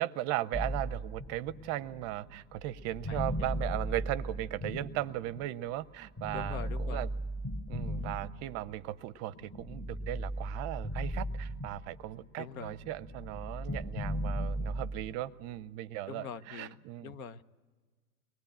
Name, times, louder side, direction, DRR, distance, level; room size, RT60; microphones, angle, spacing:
voice 1, 0.0-7.1 7.7-17.1, right 15 dB, 35° right, 18 dB, 0.6 m, -37 dB
sound 1, 0.5-5.6 6.2-8.8 9.3-12.2 12.4-15.1, equal, 20° left, 1.6 m, -37 dB
voice 2, 3.1-4.0 6.3-7.1 8.0-8.2 12.4-12.7 16.1-16.8 17.0-17.4, left 7 dB, 65° left, 14 dB, 0.9 m, -44 dB
23.5 x 19.0 x 8.8 m, 1.5 s
hypercardioid pair, 100°, 44 cm